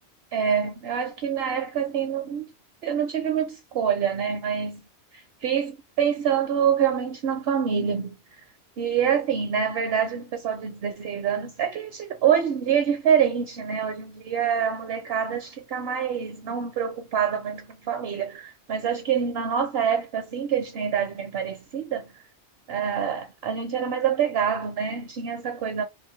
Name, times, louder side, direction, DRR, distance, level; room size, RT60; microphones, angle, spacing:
voice 1, 0.3-2.5 2.8-4.8 5.4-8.1 8.8-22.1 22.7-25.8, right 8 dB, 70° right, 0.8 m, -26 dB
2.7 x 2.4 x 3.0 m
omnidirectional pair, 1.1 m